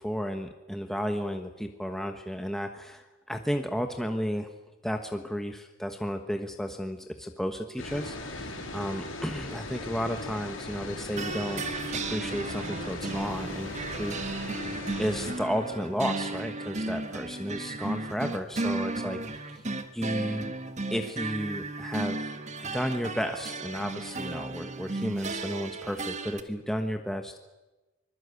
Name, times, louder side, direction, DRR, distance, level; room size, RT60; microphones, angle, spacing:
voice 1, 0.0-4.5 4.8-11.7 11.9-14.7 15.0-19.5 19.9-20.5 20.9-22.3 22.6-27.4, equal, ahead, 5 dB, 1.2 m, -33 dB
sound 1, 7.8-15.3, left 2 dB, 85° left, 6.2 m, -38 dB
sound 2, 11.2-26.4, right 3 dB, 35° right, 1.6 m, -35 dB
25.0 x 21.5 x 8.3 m, 1.1 s
head